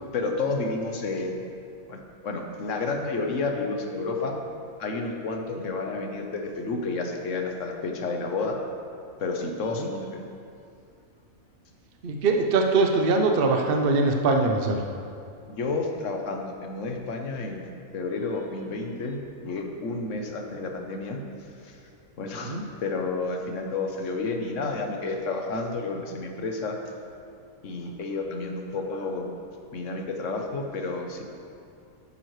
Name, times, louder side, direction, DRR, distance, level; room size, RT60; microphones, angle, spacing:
voice 1, 0.1-1.5 1.9-4.4 4.8-8.6 9.2-10.2 15.5-21.2 21.6-21.8 22.2-26.8 27.6-29.3 29.7-31.2, left 3 dB, 60° left, 3 dB, 1.2 m, -31 dB
voice 2, 12.0-14.8 22.4-22.6, right 3 dB, 50° right, 3 dB, 0.7 m, -22 dB
11.0 x 9.4 x 3.2 m, 2.5 s
omnidirectional pair, 1.5 m